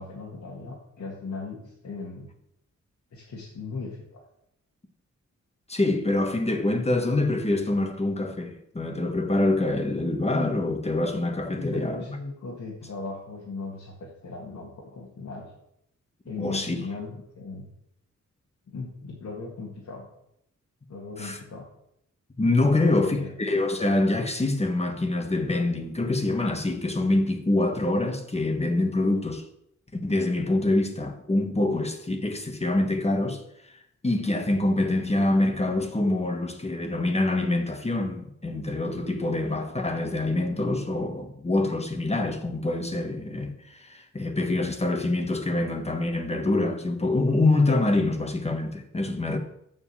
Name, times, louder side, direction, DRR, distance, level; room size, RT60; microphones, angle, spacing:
voice 1, 0.0-2.3 3.1-4.2 11.6-15.5 16.3-17.7 18.7-20.1 20.9-21.7 22.7-23.3, left 3 dB, 70° left, 2.0 m, -38 dB
voice 2, 5.7-12.0 16.4-16.8 21.2-21.4 22.4-29.4 29.9-33.4 34.0-49.4, left 2 dB, 20° left, 1.4 m, -25 dB
7.3 x 5.4 x 7.1 m
cardioid pair, 85°, 29 cm